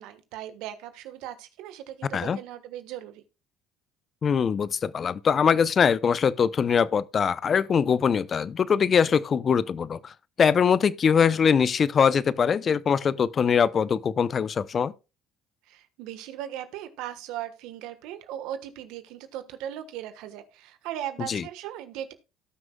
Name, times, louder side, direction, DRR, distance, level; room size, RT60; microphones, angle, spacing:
voice 1, 0.0-3.2 15.7-22.1, right 11 dB, 75° right, 1.3 m, -38 dB
voice 2, 4.2-10.1 10.4-14.9 21.3-21.4, left 7 dB, 45° left, 0.6 m, -22 dB
18.0 x 6.1 x 2.3 m
supercardioid pair, 75°, 0 cm